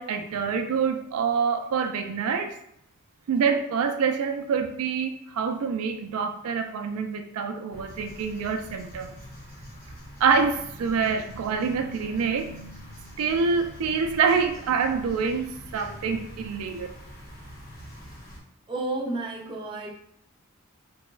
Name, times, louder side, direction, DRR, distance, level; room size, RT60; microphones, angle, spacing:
voice 1, 0.0-2.5 3.3-9.1 10.2-16.9, right 5 dB, 90° right, 6 dB, 0.3 m, -26 dB
sound 1, 7.7-18.4, equal, 45° left, 0.9 m, -44 dB
voice 2, 18.7-19.9, right 2 dB, 25° right, -2 dB, 0.5 m, -31 dB
3.3 x 2.1 x 3.1 m, 0.73 s
head